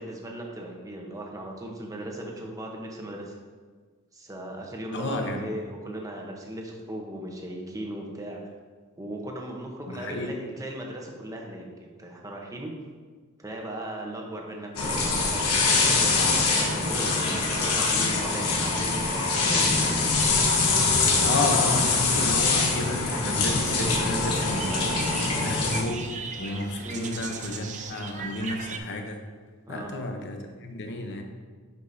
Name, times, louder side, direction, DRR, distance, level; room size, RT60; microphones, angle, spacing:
voice 1, 0.0-3.4 4.1-8.4 9.0-12.7 13.4-20.1 23.8-24.0 26.8-27.1 29.7-29.9, right 1 dB, 15° right, 0 dB, 0.9 m, -37 dB
voice 2, 4.9-5.5 9.9-10.4 21.2-26.1 26.4-29.2 29.7-31.2, left 2 dB, 55° left, 4 dB, 0.8 m, -32 dB
sound 1, 14.8-25.8, left 3 dB, 85° left, 1.2 m, -24 dB
sound 2, 23.6-28.8, right 5 dB, 35° right, 0.5 m, -38 dB
10.5 x 4.9 x 2.7 m, 1.5 s
head